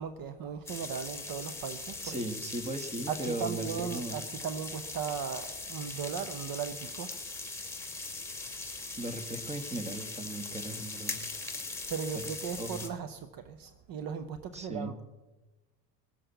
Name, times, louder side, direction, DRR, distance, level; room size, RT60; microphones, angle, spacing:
voice 1, 0.0-2.2 3.1-7.1 11.9-15.0, right 7 dB, 45° right, 11 dB, 0.9 m, -37 dB
sound 1, 0.7-12.9, left 3 dB, 5° left, 2.8 m, -40 dB
voice 2, 2.0-4.2 9.0-11.2 12.6-12.9 14.5-14.9, right 2 dB, 15° right, 9 dB, 1.5 m, -37 dB
19.5 x 7.6 x 6.9 m, 1.1 s
hypercardioid pair, 75°, 48 cm